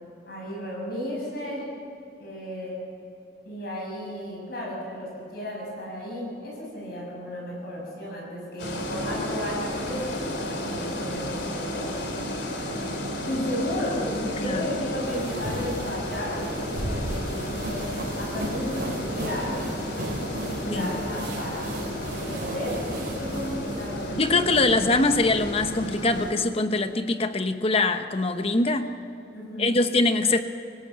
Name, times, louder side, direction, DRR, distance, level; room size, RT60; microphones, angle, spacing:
voice 1, 0.3-1.7 2.2-2.9 3.4-12.0 13.2-19.7 20.0-21.7 22.1-25.0 29.3-29.8, equal, 55° left, -3 dB, 6.8 m, -34 dB
sound 1, 8.6-26.3, equal, 75° left, 3.1 m, -33 dB
sound 2, 15.0-25.0, equal, 55° right, 4.8 m, -35 dB
voice 2, 24.2-28.9 29.6-30.4, left 2 dB, 30° left, 9 dB, 1.0 m, -23 dB
25.0 x 16.5 x 7.7 m, 2.9 s
head